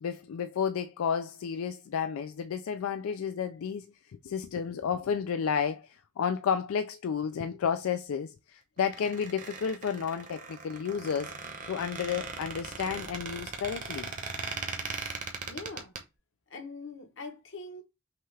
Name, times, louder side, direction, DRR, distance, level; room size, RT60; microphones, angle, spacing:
voice 1, 0.0-11.3 11.7-14.1, left 7 dB, 90° left, 0.4 m, -32 dB
Squeak, 8.8-16.0, right 4 dB, 40° right, 0.8 m, -39 dB
voice 2, 15.5-15.9 16.5-17.8, left 3 dB, 60° left, 1.0 m, -42 dB
5.8 x 2.3 x 3.2 m
head